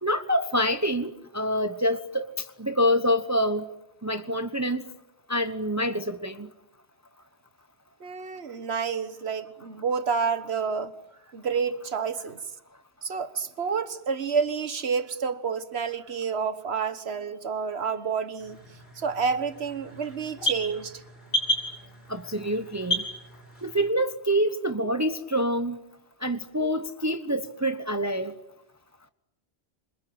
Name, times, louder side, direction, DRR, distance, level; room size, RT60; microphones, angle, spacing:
voice 1, 0.0-3.7 4.0-4.8 5.3-6.5 22.1-23.1 23.6-25.8 26.2-28.4, equal, 15° right, 1.0 m, -26 dB
voice 2, 8.0-10.9 11.3-12.4 13.0-18.6 19.0-21.0, right 5 dB, 75° right, 1.6 m, -29 dB
sound 1, 18.4-23.9, left 1 dB, 70° left, 7.5 m, -33 dB
28.5 x 25.5 x 7.8 m
omnidirectional pair, 1.1 m